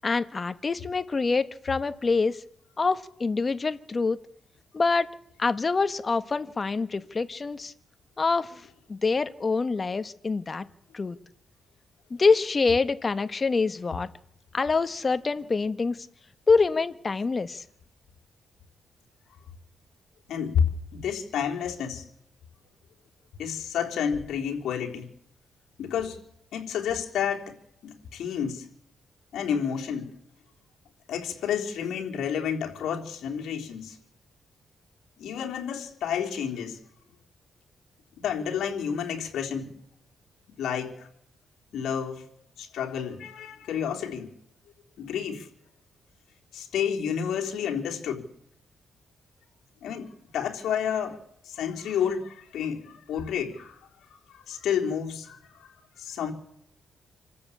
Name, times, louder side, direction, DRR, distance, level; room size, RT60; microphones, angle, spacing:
voice 1, 0.0-2.4 2.8-4.2 4.7-5.1 5.4-7.7 8.2-8.6 8.9-10.6 10.9-11.2 12.1-14.1 14.5-16.1 16.5-17.6, left 4 dB, 30° left, 12 dB, 1.3 m, -25 dB
voice 2, 20.3-20.7 20.9-22.0 23.4-25.1 25.8-26.2 26.5-27.6 27.8-28.7 29.3-30.1 31.1-34.0 35.2-36.8 38.2-39.8 40.6-41.1 41.7-42.3 42.6-44.3 45.0-45.5 46.5-48.3 49.8-51.2 51.4-53.8 54.5-55.4 56.0-56.3, left 8 dB, 80° left, 1 dB, 3.6 m, -30 dB
27.0 x 14.0 x 8.6 m, 0.74 s
cardioid pair, 115°, 0 cm